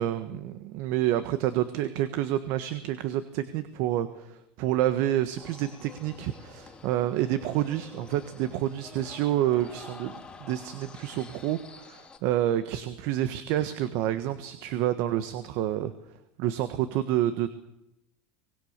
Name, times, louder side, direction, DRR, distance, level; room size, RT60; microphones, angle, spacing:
voice 1, 0.0-15.9 16.4-17.5, right 12 dB, 60° right, 11 dB, 1.4 m, -28 dB
sound 1, 5.4-12.2, left 5 dB, 15° left, 2.6 m, -48 dB
24.5 x 19.5 x 6.7 m, 0.87 s
supercardioid pair, 145°, 5 cm